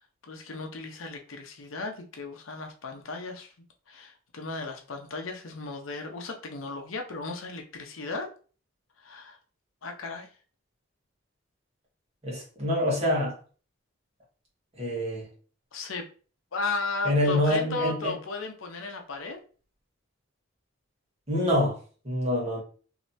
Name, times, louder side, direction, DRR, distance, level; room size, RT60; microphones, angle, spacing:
voice 1, 0.3-3.5 3.9-8.3 9.0-9.4 9.8-10.3 15.7-16.1 16.5-19.4, left 3 dB, 90° left, 0.7 m, -35 dB
voice 2, 12.2-13.3 14.8-15.3 17.0-18.1 21.3-21.8 22.0-22.6, left 1 dB, 30° right, 1.4 m, -26 dB
3.1 x 2.8 x 2.7 m
head